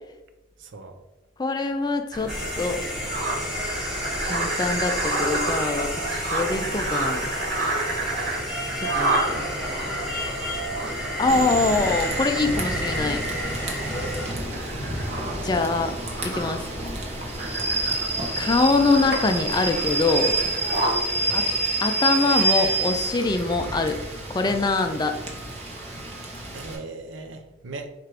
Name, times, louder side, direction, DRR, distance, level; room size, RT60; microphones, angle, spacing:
voice 1, 0.6-1.0 14.0-14.2 17.4-17.7 21.2-21.4 26.5-27.9, right 3 dB, 80° right, 6 dB, 0.6 m, -39 dB
voice 2, 1.4-2.8 4.2-7.3 8.8-9.5 11.2-13.2 15.4-15.9 16.2-16.6 18.4-20.3 21.3-21.4 21.8-24.0 24.3-25.1, left 3 dB, 20° left, 6 dB, 0.3 m, -24 dB
sound 1, 2.1-21.0, right 1 dB, 50° right, 1.4 m, -31 dB
sound 2, 2.3-14.3, equal, 5° right, 0.8 m, -31 dB
Rain / Train, 11.3-26.8, right 2 dB, 35° right, 0.8 m, -28 dB
4.4 x 2.5 x 4.7 m, 1.0 s
head